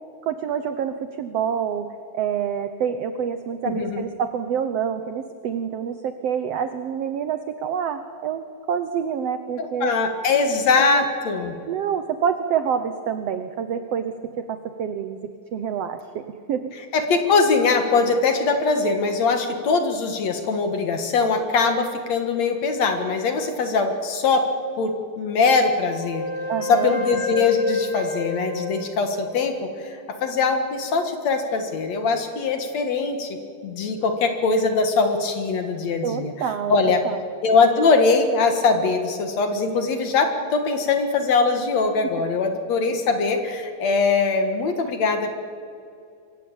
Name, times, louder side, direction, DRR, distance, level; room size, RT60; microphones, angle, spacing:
voice 1, 0.3-1.9 2.1-8.4 8.7-9.9 10.9-11.0 11.7-16.7 26.5-27.0 36.0-36.8 37.0-37.2, right 8 dB, 85° right, 9 dB, 1.4 m, -27 dB
voice 2, 3.6-4.0 9.6-11.5 16.9-24.5 24.8-26.2 26.6-36.3 36.7-37.0 37.4-45.4, left 4 dB, 55° left, 6 dB, 2.6 m, -22 dB
Wind instrument woodwind instrument, 25.4-29.6, left 2 dB, 15° left, 5.4 m, -31 dB
24.5 x 15.5 x 8.8 m, 2.5 s
omnidirectional pair, 4.1 m